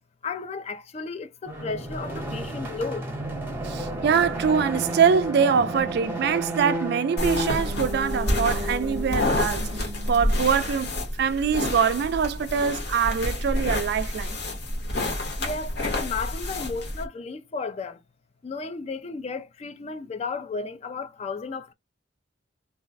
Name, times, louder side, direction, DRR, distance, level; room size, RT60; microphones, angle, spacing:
voice 1, 0.2-3.1 15.4-18.0 18.4-21.7, left 4 dB, 35° left, 0.3 m, -33 dB
sound 1, 1.5-10.7, right 1 dB, 10° right, 0.8 m, -32 dB
voice 2, 3.6-14.4, right 6 dB, 55° right, 0.3 m, -24 dB
sound 2, 7.2-17.0, left 1 dB, 55° left, 1.0 m, -29 dB
2.3 x 2.1 x 3.9 m
head